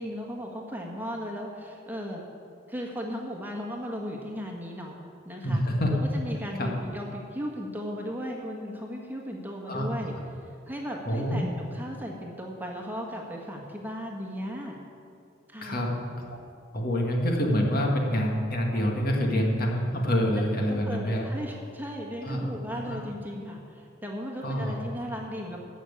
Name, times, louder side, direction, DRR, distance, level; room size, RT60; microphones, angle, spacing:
voice 1, 0.0-2.2 2.7-5.0 5.2-5.6 6.1-10.1 10.7-14.8 15.5-15.8 20.7-25.6, equal, 10° right, -1 dB, 1.5 m, -36 dB
voice 2, 5.4-5.9 6.6-6.7 9.7-9.9 11.1-11.4 15.6-16.0 16.7-21.3 22.2-22.5 22.9-23.0 24.4-24.7, equal, 50° left, 0 dB, 2.0 m, -26 dB
14.5 x 6.2 x 8.7 m, 2.4 s
head